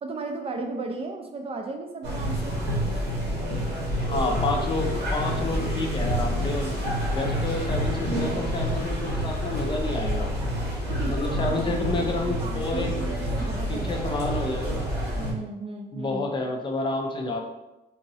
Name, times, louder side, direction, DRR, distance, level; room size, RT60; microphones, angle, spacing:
voice 1, 0.0-2.6 10.9-13.9 15.2-16.2, right 3 dB, 35° right, 3 dB, 0.3 m, -35 dB
sound 1, 2.0-15.3, equal, 70° right, 1.4 m, -28 dB
voice 2, 4.0-6.7 7.1-10.3 11.0-13.0 13.7-14.9 15.9-17.4, left 2 dB, 25° left, 2 dB, 0.5 m, -29 dB
3.8 x 2.8 x 2.8 m, 0.97 s
cardioid pair, 150°, 18 cm